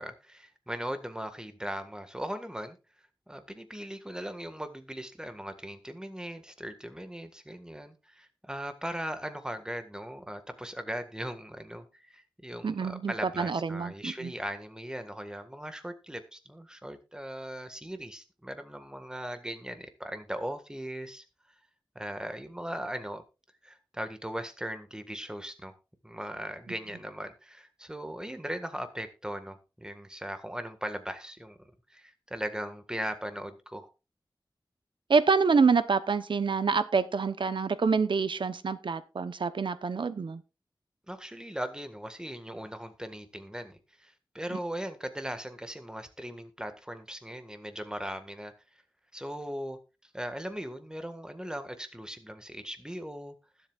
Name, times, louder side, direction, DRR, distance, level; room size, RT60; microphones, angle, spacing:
voice 1, 0.0-2.8 3.3-21.2 21.9-23.2 23.6-25.8 26.0-31.6 31.9-33.9 41.1-48.5 49.1-49.8 50.1-53.3, equal, 10° right, 1.7 m, -39 dB
voice 2, 12.6-14.3 35.1-40.4 44.5-44.6, right 5 dB, 85° right, 0.8 m, -27 dB
20.5 x 8.0 x 2.4 m
wide cardioid pair, 80°, 8 cm